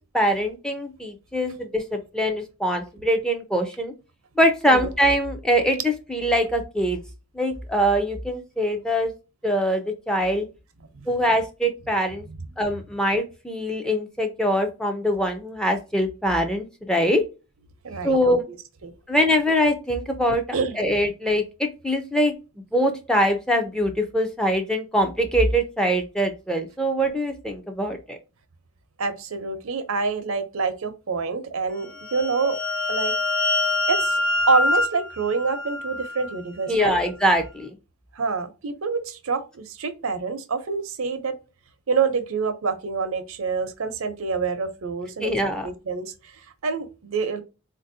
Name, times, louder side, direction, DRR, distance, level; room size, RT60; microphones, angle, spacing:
voice 1, 0.1-3.9 4.4-7.0 7.3-9.1 9.4-10.5 11.1-12.2 12.6-17.2 18.0-18.5 19.1-20.4 20.7-22.3 22.7-28.2 36.7-37.7 45.2-45.7, equal, 5° left, 0.4 m, -23 dB
voice 2, 17.8-18.4 18.8-18.9 20.5-20.8 29.0-32.6 32.9-33.1 33.9-34.2 34.5-37.0 38.1-41.3 41.9-45.3 45.6-46.1 46.6-47.4, right 4 dB, 85° right, 0.6 m, -26 dB
sound 1, 31.9-36.4, left 2 dB, 65° left, 1.0 m, -25 dB
4.0 x 2.6 x 2.6 m
head